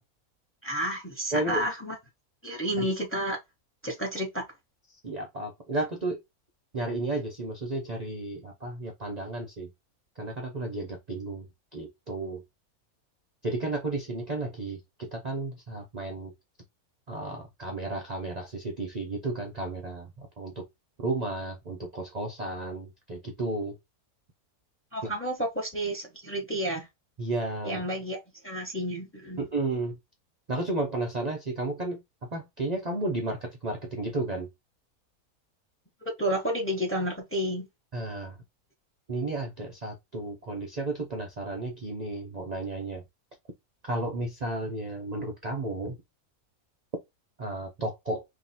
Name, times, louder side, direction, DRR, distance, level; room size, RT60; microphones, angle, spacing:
voice 1, 0.6-2.0 2.4-3.4 3.8-4.4 24.9-26.9 27.6-29.5 36.0-37.7, right 1 dB, 10° left, 0.8 m, -31 dB
voice 2, 1.3-1.6 2.8-2.9 5.0-6.2 6.7-9.7 10.2-12.4 13.4-16.3 17.1-20.6 21.0-23.8 25.0-25.1 27.2-27.8 29.4-30.0 30.5-34.5 37.9-38.4 39.1-43.0 43.8-46.0 47.4-48.2, right 2 dB, 40° right, 0.6 m, -33 dB
2.9 x 2.8 x 4.1 m
omnidirectional pair, 1.6 m